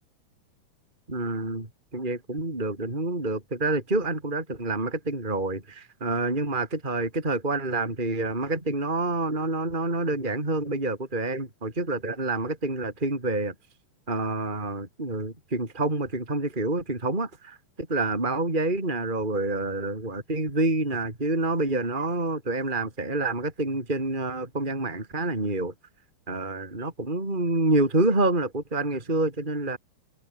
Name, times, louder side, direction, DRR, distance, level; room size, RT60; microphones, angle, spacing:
voice 1, 1.1-1.7 1.9-13.5 14.1-25.7 26.3-29.8, right 2 dB, 15° right, 4.3 m, -27 dB
omnidirectional pair, 3.7 m